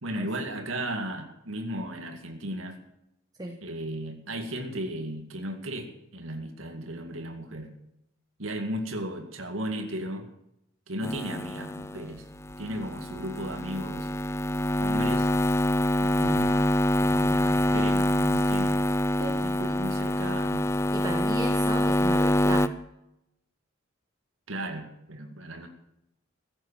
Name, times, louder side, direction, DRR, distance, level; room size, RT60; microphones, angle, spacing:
voice 1, 0.0-2.8 3.6-7.7 8.4-10.3 10.9-12.2 12.6-14.1 14.8-15.3 16.0-16.7 17.0-18.8 19.3-20.7 24.5-25.7, right 1 dB, 75° right, 5 dB, 2.2 m, -35 dB
sound 1, 11.0-22.7, left 1 dB, 15° left, 0.6 m, -25 dB
voice 2, 20.9-22.7, right 1 dB, 20° right, 4 dB, 1.3 m, -34 dB
16.0 x 8.6 x 8.6 m, 0.83 s
head